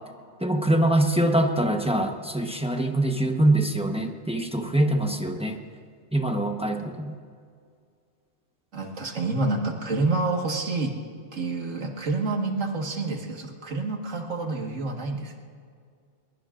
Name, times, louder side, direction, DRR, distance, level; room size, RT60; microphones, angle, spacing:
voice 1, 0.4-5.6 6.1-7.1, right 1 dB, 5° right, 4 dB, 0.9 m, -24 dB
voice 2, 8.7-11.0 11.3-15.4, right 3 dB, 85° right, 2 dB, 2.0 m, -28 dB
22.5 x 22.5 x 2.5 m, 2.2 s
omnidirectional pair, 1.3 m